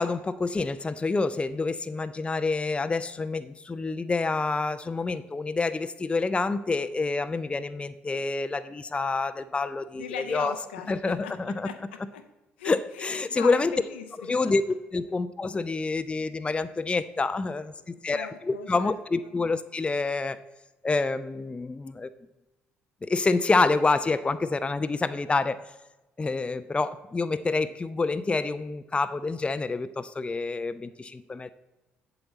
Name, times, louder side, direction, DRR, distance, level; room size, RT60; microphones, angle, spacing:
voice 1, 0.0-10.5 10.9-11.7 12.6-13.7 14.3-20.4 20.8-22.1 23.0-25.6 26.2-31.5, left 3 dB, 20° left, 12 dB, 0.4 m, -27 dB
voice 2, 9.9-12.2 12.6-14.5 15.1-15.2 17.6-17.7 18.1-19.3, left 9 dB, 85° left, 8 dB, 0.5 m, -39 dB
7.8 x 6.9 x 4.0 m, 1.0 s
hypercardioid pair, 50°, 6 cm